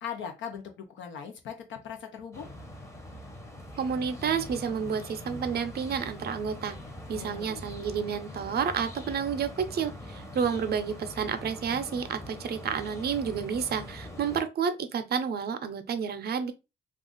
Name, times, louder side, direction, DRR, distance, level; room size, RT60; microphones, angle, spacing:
voice 1, 0.0-2.5 7.1-7.6, left 7 dB, 70° left, 0.6 m, -40 dB
sound 1, 2.3-14.4, left 1 dB, 15° left, 0.8 m, -43 dB
voice 2, 3.8-6.8 7.1-16.5, right 7 dB, 55° right, 0.6 m, -30 dB
2.4 x 2.4 x 3.8 m
cardioid pair, 90°, 20 cm